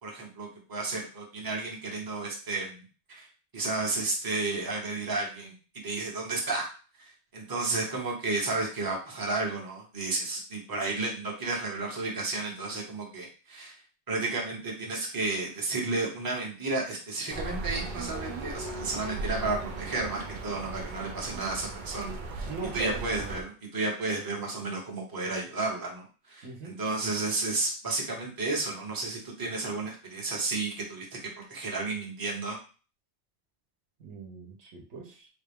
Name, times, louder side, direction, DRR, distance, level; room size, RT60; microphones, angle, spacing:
voice 1, 0.0-2.8 3.1-3.3 3.5-5.5 5.8-6.7 7.3-13.7 14.1-22.5 22.7-32.6, right 3 dB, 20° right, -1 dB, 0.8 m, -32 dB
sound 1, 17.3-23.4, right 3 dB, 55° right, 0.6 m, -37 dB
voice 2, 22.4-23.1 26.4-26.7 34.0-35.3, right 4 dB, 75° right, 1 dB, 1.1 m, -40 dB
3.9 x 2.3 x 3.5 m, 0.36 s
omnidirectional pair, 1.2 m